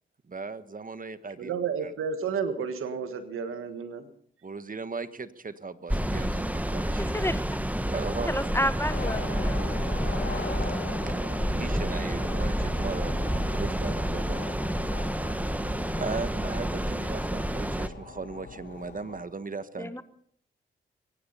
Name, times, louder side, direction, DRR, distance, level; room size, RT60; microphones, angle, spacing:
voice 1, 0.3-1.5 1.8-1.9 4.4-7.1 7.9-8.4 11.1-11.2 11.5-13.2 13.6-14.5 16.0-20.0, right 4 dB, 40° right, 13 dB, 1.4 m, -37 dB
voice 2, 1.4-4.1, right 6 dB, 85° right, 9 dB, 1.6 m, -31 dB
sound 1, 5.9-17.9, right 1 dB, 5° right, 1.3 m, -29 dB
voice 3, 7.0-7.4 8.3-9.6 19.8-20.0, equal, 10° left, 12 dB, 1.4 m, -30 dB
sound 2, 8.9-19.2, left 5 dB, 55° left, 2.1 m, -41 dB
23.0 x 10.0 x 5.6 m, 0.64 s
supercardioid pair, 40°, 21 cm